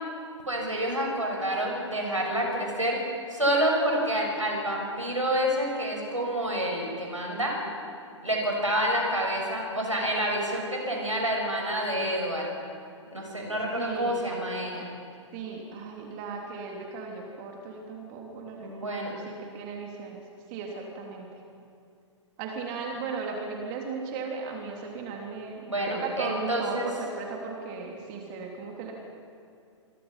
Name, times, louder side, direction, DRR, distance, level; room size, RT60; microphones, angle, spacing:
voice 1, 0.5-3.0 3.3-7.6 8.2-12.5 13.1-14.9 18.6-19.1 25.7-26.9, equal, 90° right, 0 dB, 6.7 m, -28 dB
voice 2, 13.8-14.2 15.3-20.2 20.5-21.4 22.4-28.9, right 4 dB, 35° right, 0 dB, 3.4 m, -36 dB
27.0 x 23.0 x 5.8 m, 2.4 s
figure-of-eight pair, 115°, 16 cm